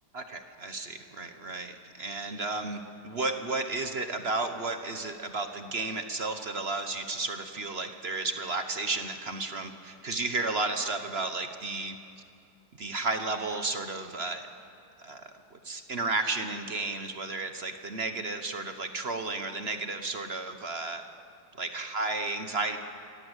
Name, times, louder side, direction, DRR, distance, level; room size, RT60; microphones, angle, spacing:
voice 1, 0.1-2.8 3.0-12.0 12.8-14.5 15.0-21.0 21.6-22.8, right 3 dB, 40° right, 8 dB, 1.0 m, -33 dB
25.0 x 17.5 x 8.1 m, 2.5 s
omnidirectional pair, 2.3 m